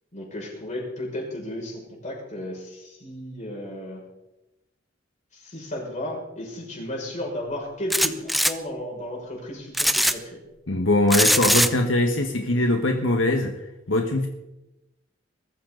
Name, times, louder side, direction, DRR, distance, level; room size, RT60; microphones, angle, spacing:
voice 1, 0.1-4.0 5.3-10.4, left 1 dB, 40° left, -1 dB, 6.2 m, -34 dB
sound 1, 7.9-8.5 9.7-10.1 11.1-11.7, equal, ahead, 0.7 m, -20 dB
voice 2, 10.7-13.6 13.9-14.3, left 1 dB, 80° left, 4 dB, 1.5 m, -22 dB
22.0 x 14.0 x 4.0 m, 0.96 s
head